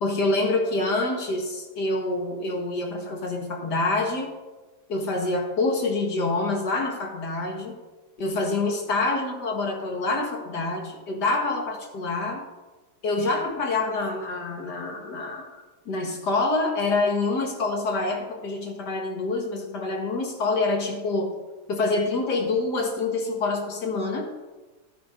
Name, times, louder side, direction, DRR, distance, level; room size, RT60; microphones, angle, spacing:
voice 1, 0.0-4.3 4.9-7.7 8.2-12.4 13.0-15.5 15.9-21.4 21.7-24.3, left 3 dB, 65° left, 1 dB, 2.1 m, -26 dB
13.5 x 12.0 x 2.6 m, 1.2 s
omnidirectional pair, 2.0 m